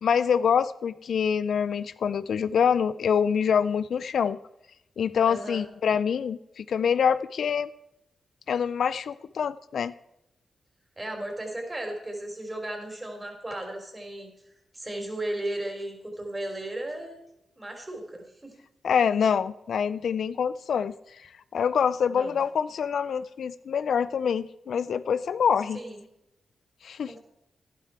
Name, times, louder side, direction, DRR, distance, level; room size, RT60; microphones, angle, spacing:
voice 1, 0.0-4.4 5.0-7.7 8.5-9.9 18.8-20.9 21.5-25.8 26.8-27.1, left 7 dB, 75° left, 15 dB, 0.4 m, -25 dB
voice 2, 5.3-5.7 11.0-14.3 14.7-17.2 17.6-18.5 22.1-22.4 25.7-26.0 27.1-27.2, right 1 dB, 25° right, 3 dB, 4.3 m, -35 dB
11.5 x 11.0 x 4.6 m, 0.83 s
supercardioid pair, 40°, 0 cm